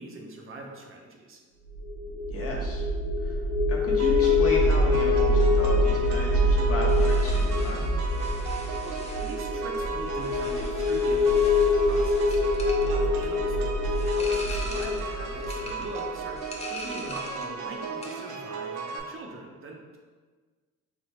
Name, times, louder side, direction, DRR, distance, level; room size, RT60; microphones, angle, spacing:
voice 1, 0.0-1.4 8.8-20.0, right 2 dB, 45° right, 1 dB, 0.7 m, -42 dB
sound 1, 1.7-16.8, left 2 dB, 85° left, 1.1 m, -25 dB
voice 2, 2.3-2.8 3.2-3.4 3.7-7.8, left 1 dB, 50° left, -2 dB, 1.0 m, -34 dB
sound 2, 4.0-19.0, right 5 dB, 90° right, 0.6 m, -36 dB
sound 3, 6.9-17.6 17.8-18.3, left 2 dB, 20° left, 0.7 m, -43 dB
3.4 x 3.3 x 3.1 m, 1.4 s
cardioid pair, 90°, 30 cm